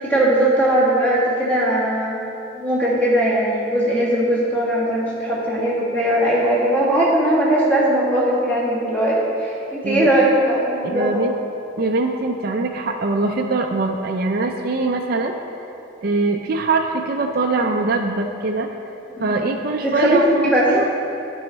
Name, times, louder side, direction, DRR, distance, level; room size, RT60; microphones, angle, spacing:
voice 1, 0.0-2.2 2.5-11.2 19.2-19.4 19.8-20.9, right 1 dB, 10° left, -7 dB, 1.7 m, -19 dB
voice 2, 10.8-11.3 11.8-15.7 16.0-18.7 19.2-20.9, right 3 dB, 45° right, 2 dB, 0.4 m, -22 dB
11.0 x 5.6 x 4.1 m, 2.7 s
head